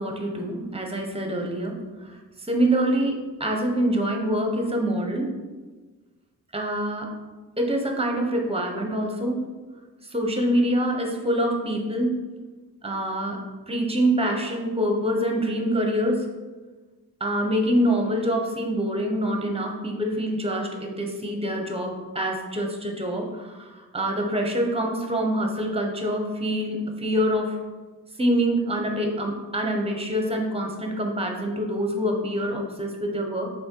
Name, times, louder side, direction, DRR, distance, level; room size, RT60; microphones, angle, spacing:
voice 1, 0.0-5.3 6.5-7.1 7.6-9.4 10.0-12.1 12.8-13.4 13.7-16.3 17.2-27.6 28.2-33.5, equal, 15° right, 2 dB, 1.1 m, -25 dB
6.2 x 4.1 x 4.6 m, 1.3 s
wide cardioid pair, 120°, 34 cm